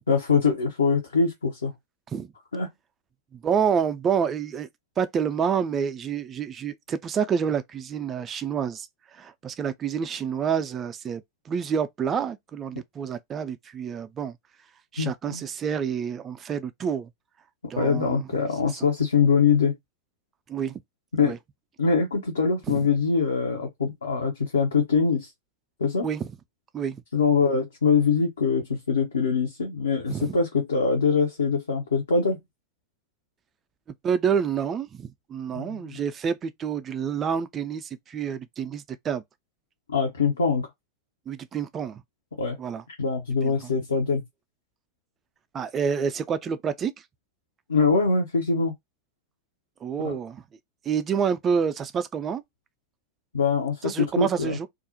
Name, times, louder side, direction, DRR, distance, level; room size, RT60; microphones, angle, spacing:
voice 1, 0.1-1.7 2.5-2.7 15.0-15.4 17.8-19.8 21.1-21.3 21.8-25.3 25.8-26.1 27.1-32.4 35.5-36.0 39.9-40.7 42.4-42.6 43.0-44.2 47.7-48.7 50.0-50.1 53.3-54.6, left 5 dB, 70° left, 0.6 m, -23 dB
voice 2, 3.3-4.7 5.0-8.9 9.1-14.4 14.9-17.1 17.7-18.3 20.5-20.8 21.2-21.4 22.7-22.8 26.0-26.3 26.7-27.0 30.1-30.4 34.0-39.2 41.3-42.0 42.6-42.8 43.4-43.7 45.5-46.9 49.8-50.4 50.9-52.4 53.8-54.7, right 7 dB, 25° right, 0.3 m, -28 dB
2.4 x 2.0 x 2.6 m
figure-of-eight pair, 90°, 0 cm